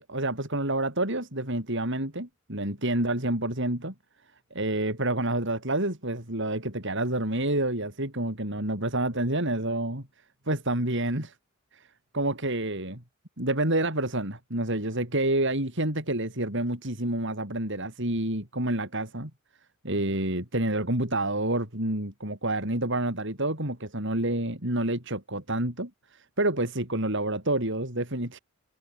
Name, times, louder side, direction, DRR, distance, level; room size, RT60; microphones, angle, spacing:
voice 1, 0.0-3.9 4.5-10.1 10.5-11.3 11.7-11.9 12.1-13.0 13.4-19.3 19.8-28.4, right 1 dB, 60° right, 7.3 m, -28 dB
head